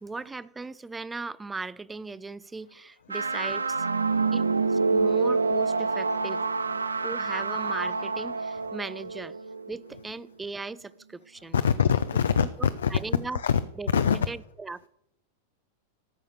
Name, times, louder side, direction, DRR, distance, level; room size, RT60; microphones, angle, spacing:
voice 1, 0.0-3.9 4.3-6.4 7.0-9.4 9.7-11.6 12.4-13.4 13.8-13.9 14.3-14.9, right 3 dB, 10° right, 0.4 m, -38 dB
sound 1, 3.1-10.0, right 4 dB, 75° right, 0.5 m, -27 dB
voice 2, 11.5-13.0 13.3-13.6 13.9-14.3, left 7 dB, 65° left, 0.5 m, -24 dB
13.5 x 6.5 x 6.9 m
figure-of-eight pair, 90°, 0 cm